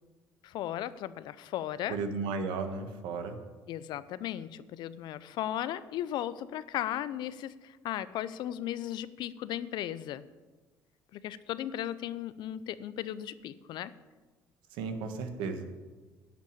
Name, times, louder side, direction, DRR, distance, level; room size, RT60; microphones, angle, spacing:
voice 1, 0.4-2.0 3.7-10.2 11.1-13.9, left 12 dB, 70° left, 15 dB, 0.6 m, -36 dB
voice 2, 1.9-3.4 14.7-15.6, right 4 dB, 80° right, 7 dB, 1.3 m, -34 dB
11.5 x 6.1 x 8.6 m, 1.3 s
supercardioid pair, 70°, 8 cm